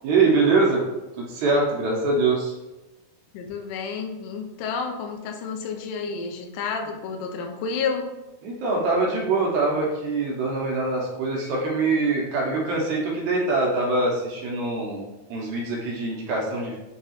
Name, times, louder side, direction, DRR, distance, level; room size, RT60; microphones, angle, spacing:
voice 1, 0.0-0.8 1.1-2.6 8.4-16.8, right 3 dB, 70° right, -2 dB, 1.9 m, -23 dB
voice 2, 3.3-8.1, left 5 dB, 85° left, 3 dB, 2.2 m, -30 dB
6.2 x 2.9 x 2.9 m, 1.0 s
omnidirectional pair, 3.8 m